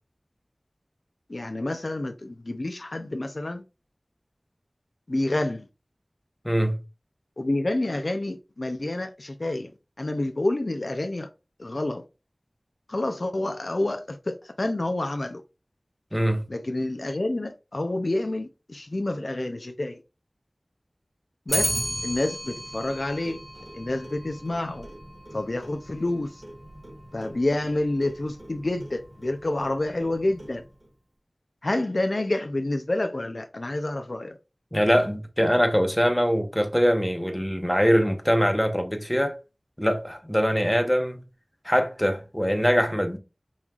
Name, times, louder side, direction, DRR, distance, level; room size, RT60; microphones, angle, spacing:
voice 1, 1.3-3.6 5.1-5.7 7.4-9.7 10.0-11.3 11.6-12.0 12.9-15.4 16.5-20.0 21.5-23.4 23.8-24.9 25.3-26.3 27.1-30.6 31.6-34.4, left 2 dB, 70° left, 0.5 m, -28 dB
voice 2, 6.4-6.8 16.1-16.4 34.7-39.4 39.8-41.2 41.6-43.2, equal, 5° left, 0.9 m, -23 dB
Clock, 21.5-30.9, equal, 60° right, 2.1 m, -36 dB
5.5 x 3.1 x 2.4 m
wide cardioid pair, 45°, 0 cm